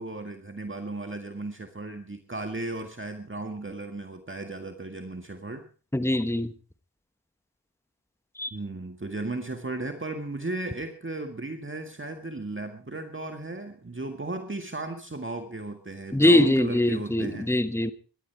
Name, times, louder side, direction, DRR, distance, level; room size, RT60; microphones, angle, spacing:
voice 1, 0.0-5.6 8.5-17.5, right 2 dB, 30° right, 6 dB, 1.9 m, -35 dB
voice 2, 5.9-6.5 8.4-8.5 16.1-17.9, left 1 dB, 5° left, 12 dB, 1.2 m, -22 dB
19.0 x 13.0 x 4.7 m, 0.38 s
cardioid pair, 45°, 41 cm